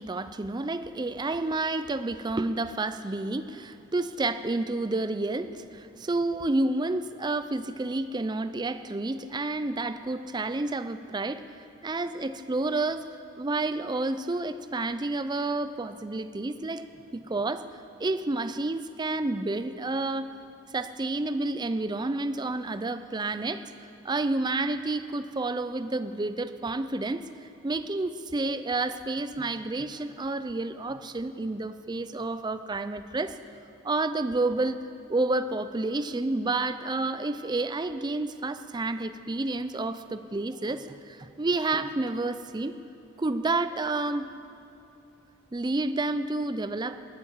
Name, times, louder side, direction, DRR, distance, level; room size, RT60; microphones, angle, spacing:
voice 1, 0.0-11.4 11.8-13.1 13.4-16.9 17.1-17.7 18.0-20.4 20.7-23.6 24.0-33.4 33.8-34.8 35.1-42.8 43.2-44.3 45.5-47.0, right 2 dB, 20° right, 11 dB, 0.4 m, -30 dB
20.0 x 9.2 x 7.3 m, 2.7 s
head